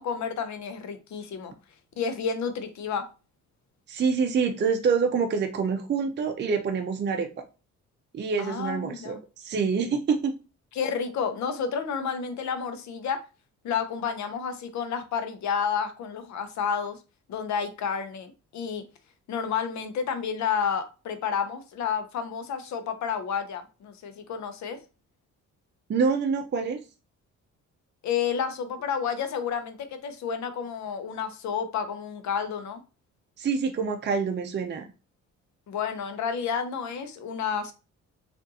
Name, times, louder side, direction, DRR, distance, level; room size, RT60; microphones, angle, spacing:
voice 1, 0.0-1.5 2.0-3.1 8.4-9.2 10.7-13.3 13.6-17.0 17.3-18.9 19.3-24.8 28.0-32.8 35.7-37.7, left 6 dB, 65° left, 0.7 m, -30 dB
voice 2, 3.9-7.3 8.1-10.3 25.9-26.8 33.4-34.9, right 5 dB, 35° right, 0.5 m, -26 dB
3.6 x 2.5 x 2.6 m
cardioid pair, 90°, 30 cm